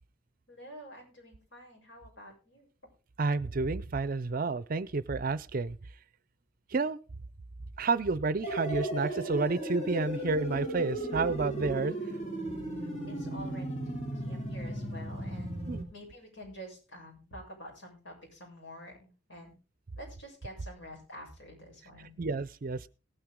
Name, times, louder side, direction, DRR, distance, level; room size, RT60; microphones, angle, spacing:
voice 1, 0.5-2.7 13.1-15.6 15.9-19.5 20.0-22.2, equal, 75° left, -1 dB, 7.0 m, -48 dB
voice 2, 3.2-5.8 6.7-7.0 7.8-11.9 15.7-15.9 22.2-22.9, right 3 dB, 45° right, 18 dB, 0.5 m, -30 dB
sound 1, 8.4-15.8, right 1 dB, 35° left, 3.2 m, -36 dB
18.5 x 9.0 x 3.7 m, 0.33 s
head